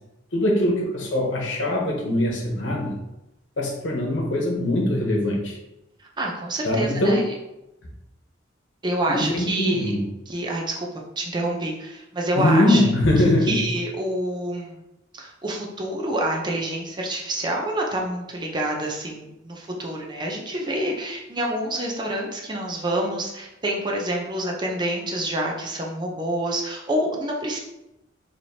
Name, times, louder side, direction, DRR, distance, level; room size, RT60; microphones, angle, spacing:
voice 1, 0.3-3.0 3.6-5.6 6.6-7.2 9.1-10.0 12.4-13.6, left 1 dB, 75° left, -1 dB, 1.0 m, -22 dB
voice 2, 6.2-7.2 8.8-9.9 10.3-10.9 11.2-12.8 13.4-14.8 15.1-27.6, right 1 dB, 25° right, -1 dB, 0.6 m, -27 dB
4.6 x 3.0 x 2.7 m, 0.92 s
head